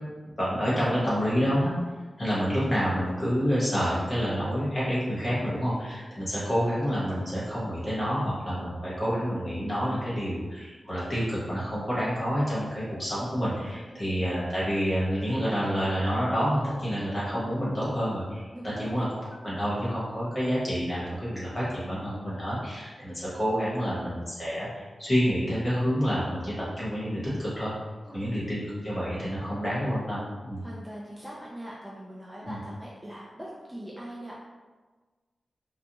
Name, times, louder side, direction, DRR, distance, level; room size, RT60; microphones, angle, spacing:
voice 1, 0.4-1.7 2.2-27.7 28.1-30.6 32.5-32.6, equal, 30° left, -9 dB, 1.1 m, -28 dB
voice 2, 13.9-14.2 18.5-19.1 28.0-28.4 30.6-34.4, right 1 dB, 15° right, -6 dB, 0.4 m, -42 dB
2.4 x 2.2 x 2.8 m, 1.3 s
wide cardioid pair, 140°, 0 cm